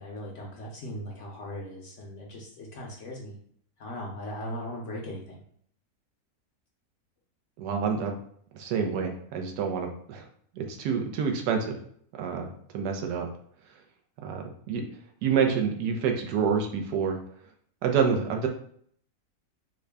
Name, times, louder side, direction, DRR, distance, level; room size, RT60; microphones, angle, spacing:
voice 1, 0.0-3.4 3.8-5.4, equal, 60° left, -1 dB, 0.8 m, -38 dB
voice 2, 7.6-8.2 8.5-10.2 10.5-11.7 12.2-13.3 14.2-14.8 15.2-17.2 17.8-18.5, right 6 dB, 85° right, 3 dB, 1.2 m, -27 dB
3.7 x 2.1 x 3.3 m, 0.63 s
omnidirectional pair, 1.7 m